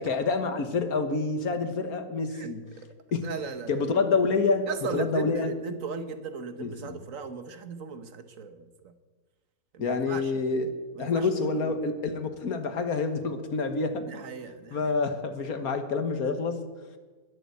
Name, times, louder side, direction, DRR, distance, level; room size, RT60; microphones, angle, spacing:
voice 1, 0.0-2.6 3.1-3.3 3.7-5.5 6.6-7.0 9.8-14.0 14.7-16.6, left 4 dB, 75° left, 8 dB, 1.8 m, -27 dB
voice 2, 3.2-3.8 4.7-8.9 9.7-10.3 10.9-11.5 14.0-14.9, right 5 dB, 60° right, 10 dB, 1.4 m, -37 dB
20.5 x 7.2 x 8.3 m, 1.3 s
omnidirectional pair, 1.6 m